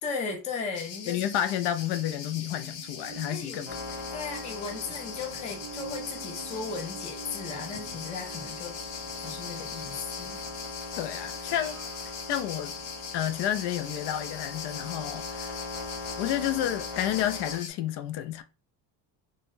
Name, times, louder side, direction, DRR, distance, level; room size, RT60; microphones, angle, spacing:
voice 1, 0.0-1.2 3.3-3.6 4.1-8.8 9.2-10.4, left 5 dB, 20° left, 0.3 m, -36 dB
sound 1, 0.7-17.7, left 6 dB, 90° left, 0.9 m, -41 dB
voice 2, 1.1-3.8 11.0-11.8 12.3-12.7 13.1-15.5 16.2-18.4, left 11 dB, 70° left, 0.5 m, -30 dB
sound 2, 2.0-13.5 13.9-14.0, right 10 dB, 65° right, 0.6 m, -49 dB
sound 3, 3.7-17.6, left 3 dB, 5° right, 0.7 m, -41 dB
3.9 x 2.1 x 2.5 m
cardioid pair, 180°, 43 cm